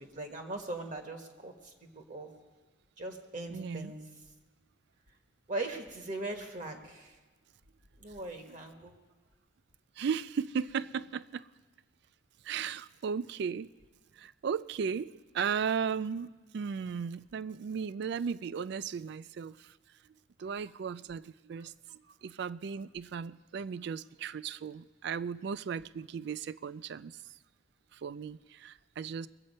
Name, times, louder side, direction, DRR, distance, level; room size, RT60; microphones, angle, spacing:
voice 1, 0.0-2.3 3.0-4.1 5.5-7.2 8.0-9.0, right 2 dB, 40° right, 1.2 m, -40 dB
voice 2, 3.5-3.9 10.0-11.5 12.4-13.7 14.2-19.7 20.4-21.7 22.2-27.2 27.9-29.3, right 6 dB, 55° right, 0.3 m, -36 dB
21.0 x 7.9 x 5.3 m
head